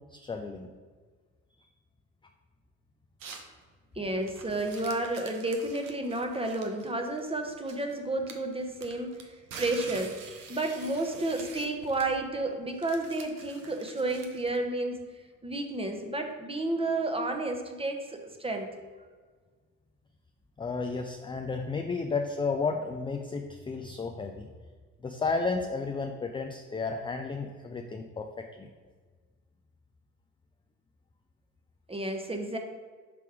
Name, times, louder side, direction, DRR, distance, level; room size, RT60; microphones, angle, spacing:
voice 1, 0.1-0.7 20.6-24.5 25.0-28.7, left 4 dB, 15° left, 4 dB, 0.4 m, -32 dB
sound 1, 3.2-3.5 4.1-7.9 8.3-14.6, right 5 dB, 55° right, 1.0 m, -46 dB
voice 2, 4.0-10.2 10.5-15.1 15.4-18.7 31.9-32.6, right 2 dB, 15° right, 4 dB, 1.0 m, -31 dB
6.0 x 3.5 x 4.7 m, 1.5 s
hypercardioid pair, 55°, 40 cm